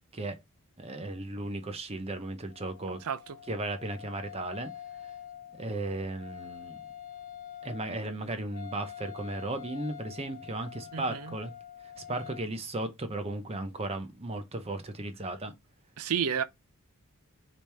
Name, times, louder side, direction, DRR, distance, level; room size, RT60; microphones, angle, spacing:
voice 1, 0.8-3.0 3.5-4.7 5.6-6.8 7.6-11.5 12.0-15.5, right 2 dB, 30° right, 0.7 m, -35 dB
Wind instrument woodwind instrument, 2.5-12.5, left 10 dB, 70° left, 0.8 m, -46 dB
voice 2, 3.0-3.4 10.9-11.4 16.0-16.4, right 7 dB, 80° right, 0.5 m, -31 dB
5.1 x 3.0 x 3.3 m
head